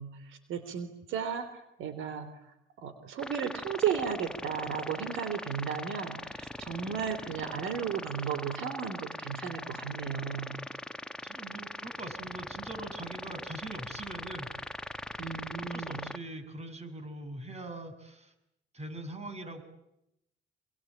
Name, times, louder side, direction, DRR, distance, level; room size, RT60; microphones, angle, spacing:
voice 1, 0.0-1.5 1.8-2.3 2.8-10.6 15.2-16.1, right 7 dB, 85° right, 12 dB, 3.6 m, -34 dB
sound 1, 3.2-16.2, left 1 dB, 5° left, 1.7 m, -41 dB
voice 2, 11.2-14.5 15.6-18.3 18.7-19.6, right 2 dB, 30° right, 9 dB, 7.3 m, -42 dB
28.0 x 23.5 x 9.0 m, 0.82 s
cardioid pair, 90°, 20 cm